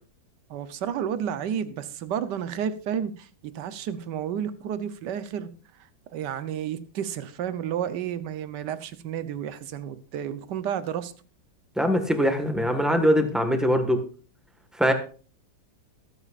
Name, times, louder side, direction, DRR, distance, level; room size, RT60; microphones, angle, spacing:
voice 1, 0.5-5.5 6.1-11.1, right 9 dB, 75° right, 13 dB, 1.4 m, -31 dB
voice 2, 11.8-14.0 14.8-14.9, equal, ahead, 5 dB, 1.3 m, -22 dB
22.5 x 8.1 x 2.5 m, 0.39 s
omnidirectional pair, 1.9 m